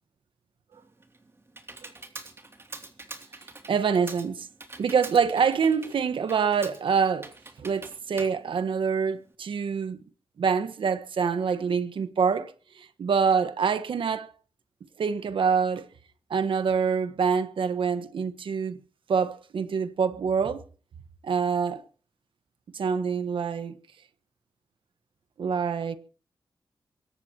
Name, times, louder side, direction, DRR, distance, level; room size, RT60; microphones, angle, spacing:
Computer keyboard, 0.7-9.3, right 2 dB, 30° right, 2.9 m, -45 dB
voice 1, 3.7-4.5 4.8-7.3 7.6-10.0 10.4-14.3 15.0-15.9 16.3-18.8 19.1-20.7 21.2-21.8 22.7-23.8 25.4-26.0, right 6 dB, 80° right, 1.5 m, -26 dB
23.5 x 18.0 x 3.0 m
wide cardioid pair, 100°, 9 cm